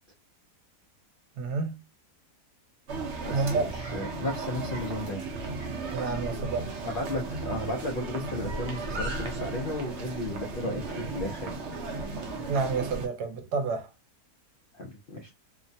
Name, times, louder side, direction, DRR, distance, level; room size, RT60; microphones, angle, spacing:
voice 1, 1.4-1.8 3.3-3.8 5.9-6.8 12.4-13.9, right 4 dB, 90° right, 1.2 m, -29 dB
sound 1, 2.9-13.1, right 3 dB, 60° right, 0.8 m, -35 dB
voice 2, 3.2-5.2 6.8-11.5 14.7-15.3, left 1 dB, 70° left, 0.5 m, -34 dB
3.0 x 2.1 x 2.5 m
omnidirectional pair, 1.7 m